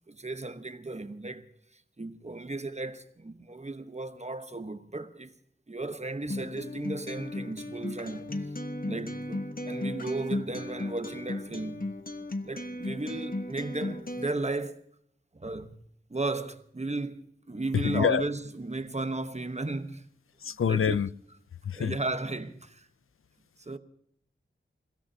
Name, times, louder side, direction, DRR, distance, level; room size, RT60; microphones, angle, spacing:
voice 1, 0.1-5.3 5.7-8.3 8.8-11.9 12.4-14.8 15.3-15.8 16.1-20.1 20.5-21.0 21.7-22.9 23.6-23.8, right 2 dB, 30° right, 1.1 m, -35 dB
Acoustic guitar, 6.3-14.3, left 1 dB, 40° left, 1.3 m, -36 dB
voice 2, 17.7-18.2 20.4-21.1 21.6-22.0, left 7 dB, 85° left, 0.5 m, -26 dB
28.5 x 16.5 x 2.8 m
wide cardioid pair, 75°, 21 cm